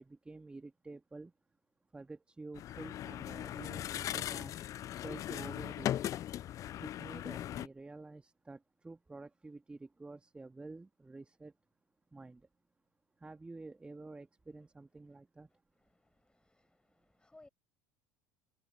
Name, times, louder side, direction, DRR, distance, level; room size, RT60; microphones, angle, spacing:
voice 1, 0.0-1.3 1.9-4.6 5.0-6.1 6.8-11.5 12.1-12.5 13.2-15.5, right 3 dB, 10° right, 1.5 m, -49 dB
sound 1, 2.6-7.7, left 12 dB, 35° left, 0.4 m, -39 dB
voice 2, 15.8-17.5, left 2 dB, 10° left, 6.3 m, -63 dB
figure-of-eight pair, 70°, 10 cm